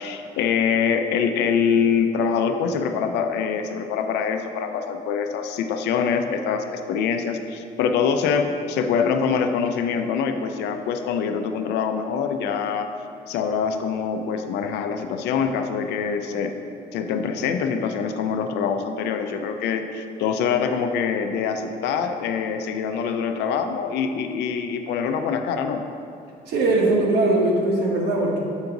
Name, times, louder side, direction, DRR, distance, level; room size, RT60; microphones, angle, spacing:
voice 1, 0.0-12.9 13.3-16.5 16.9-25.8, left 6 dB, 85° left, 6 dB, 0.6 m, -24 dB
voice 2, 26.5-28.4, right 2 dB, 80° right, -2 dB, 1.5 m, -20 dB
8.1 x 4.7 x 3.9 m, 2.5 s
cardioid pair, 110°, 17 cm